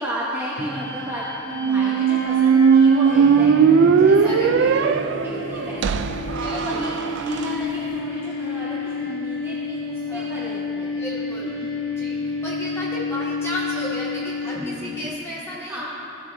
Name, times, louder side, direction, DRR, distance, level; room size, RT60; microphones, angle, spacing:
voice 1, 0.0-6.2 6.5-11.0 11.4-11.7 14.6-15.1 15.7-15.8, equal, 10° right, -8 dB, 1.1 m, -33 dB
sound 1, 0.6-15.1, left 3 dB, 55° left, 1.8 m, -30 dB
Squeak, 1.5-7.5, right 6 dB, 60° right, 0.3 m, -18 dB
voice 2, 4.2-4.7 6.4-6.9 10.1-10.3 10.9-11.5 12.0-15.8, equal, 15° left, -8 dB, 2.3 m, -33 dB
15.5 x 7.2 x 3.4 m, 2.9 s
head